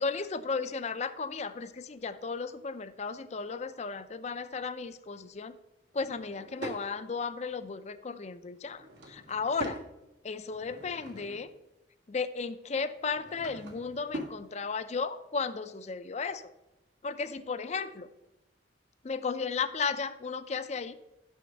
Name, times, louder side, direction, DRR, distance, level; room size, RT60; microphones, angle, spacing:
voice 1, 0.0-5.6 5.9-9.8 10.2-11.5 12.1-16.5 17.0-18.1 19.0-20.9, left 5 dB, 40° left, 12 dB, 0.5 m, -34 dB
Drawer open or close / Wood, 5.9-6.9 8.6-9.9 10.4-11.6 12.9-14.4, equal, 85° right, 1.6 m, -43 dB
6.3 x 6.2 x 6.8 m, 0.96 s
head